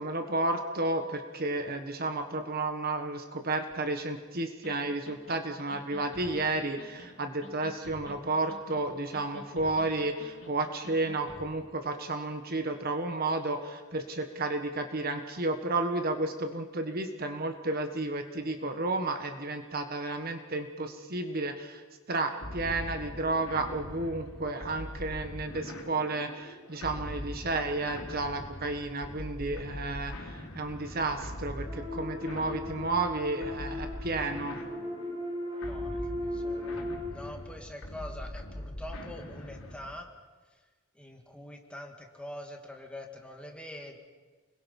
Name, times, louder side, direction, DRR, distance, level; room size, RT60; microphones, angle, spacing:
voice 1, 0.0-21.8 22.1-34.6, right 2 dB, 45° right, 6 dB, 1.5 m, -32 dB
sound 1, 4.6-4.7 5.1-5.4 5.7-6.5 6.8-7.1 7.4-8.2 8.5-8.9 9.1-9.9 10.2-10.5 10.8-11.5, left 1 dB, 65° left, 4.5 m, -48 dB
sound 2, 22.4-40.0, left 1 dB, 90° left, 3.4 m, -42 dB
sound 3, 31.6-37.1, left 1 dB, 25° right, 7.2 m, -37 dB
voice 2, 35.7-40.1 41.0-44.0, left 1 dB, 5° left, 2 dB, 2.1 m, -44 dB
29.5 x 22.0 x 5.5 m, 1.3 s
head